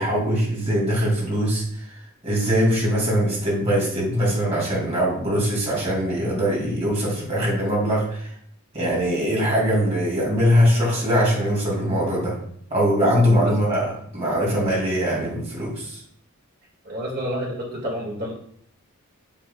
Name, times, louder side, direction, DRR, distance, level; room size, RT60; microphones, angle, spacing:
voice 1, 0.0-1.6 2.2-8.3 8.7-12.4 12.7-16.0, equal, 30° right, -4 dB, 2.6 m, -22 dB
voice 2, 16.8-18.3, equal, 45° right, -3 dB, 2.1 m, -29 dB
6.7 x 6.0 x 2.3 m, 0.63 s
head